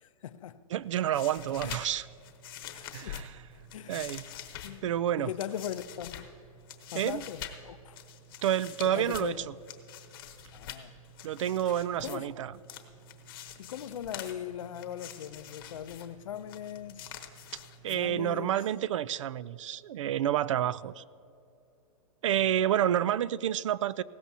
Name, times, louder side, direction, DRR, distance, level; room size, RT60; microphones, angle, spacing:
voice 1, 0.0-0.7 1.6-1.8 2.7-3.2 3.7-4.0 4.6-6.3 6.9-8.0 8.9-9.5 10.5-10.9 11.9-12.3 13.6-17.2 17.9-18.6 22.5-22.6, left 10 dB, 65° left, 0.6 m, -40 dB
voice 2, 0.7-2.1 2.9-3.4 3.9-4.3 4.8-5.3 6.9-7.2 8.4-9.5 11.2-12.5 17.8-21.0 22.2-24.0, right 11 dB, 60° right, 0.4 m, -29 dB
sound 1, 0.8-18.4, left 8 dB, 35° left, 1.0 m, -46 dB
19.5 x 16.5 x 2.8 m
hypercardioid pair, 170°, 19 cm